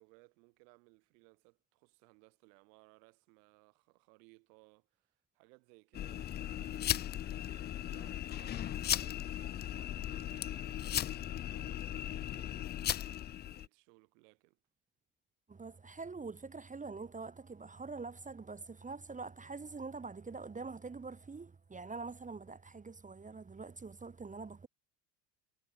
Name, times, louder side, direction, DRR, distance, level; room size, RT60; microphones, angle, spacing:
voice 1, 0.0-7.1 7.9-10.9 11.1-13.2 13.5-14.6, right 32 dB, 80° right, 2.9 m, -64 dB
sound 1, 5.9-13.7, left 11 dB, 25° left, 0.3 m, -37 dB
voice 2, 15.5-24.7, right 4 dB, 15° right, 1.3 m, -45 dB
supercardioid pair, 110°, 48 cm